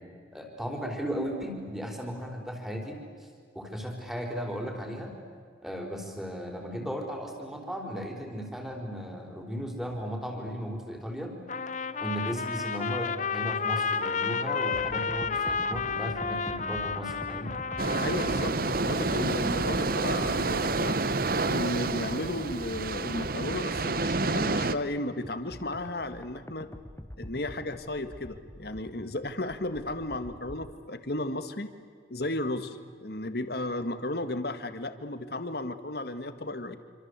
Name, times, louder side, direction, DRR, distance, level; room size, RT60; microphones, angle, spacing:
voice 1, 0.3-3.0 3.5-5.1 5.6-11.4 12.0-17.6, equal, ahead, 2 dB, 4.5 m, -36 dB
Trumpet, 11.5-18.6, left 5 dB, 40° left, 1.0 m, -31 dB
sound 1, 14.7-30.7, left 1 dB, 15° left, 1.0 m, -45 dB
sound 2, 17.8-24.7, right 3 dB, 50° right, 1.0 m, -28 dB
voice 2, 18.0-21.0 21.5-26.7 27.2-31.7 32.1-36.8, left 1 dB, 55° left, 10 dB, 1.8 m, -34 dB
27.5 x 26.0 x 8.3 m, 2.1 s
head